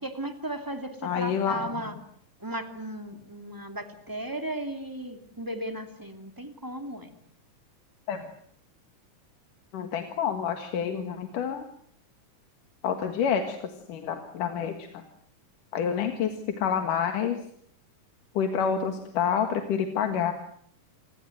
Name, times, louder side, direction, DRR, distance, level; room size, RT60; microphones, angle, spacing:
voice 1, 0.0-1.9 2.4-7.1 15.9-16.0, right 1 dB, 5° right, 7 dB, 2.1 m, -35 dB
voice 2, 1.0-1.6 8.1-8.2 9.7-11.6 12.8-15.0 15.7-17.4 18.3-20.3, left 7 dB, 85° left, 6 dB, 3.3 m, -28 dB
28.0 x 21.5 x 7.9 m, 0.63 s
omnidirectional pair, 3.6 m